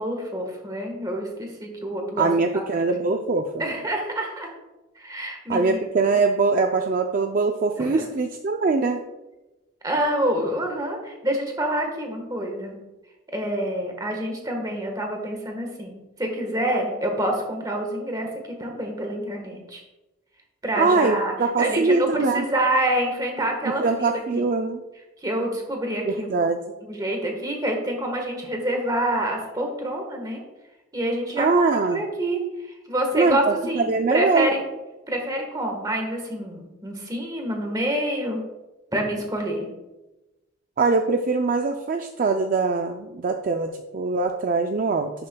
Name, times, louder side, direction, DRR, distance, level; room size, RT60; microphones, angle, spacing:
voice 1, 0.0-2.6 2.9-3.1 3.6-4.5 5.0-5.8 7.8-8.0 9.8-12.8 13.3-18.3 18.6-19.8 20.6-24.4 25.2-26.5 26.8-30.4 30.9-32.4 32.9-34.6 35.1-38.4 38.9-39.7, right 1 dB, 20° right, 2 dB, 1.3 m, -27 dB
voice 2, 2.2-3.6 5.5-9.0 20.8-22.4 23.8-24.8 26.1-26.6 31.4-32.0 33.1-34.5 40.8-45.1, right 3 dB, 45° right, 4 dB, 0.4 m, -22 dB
11.0 x 6.7 x 2.3 m, 1.1 s
head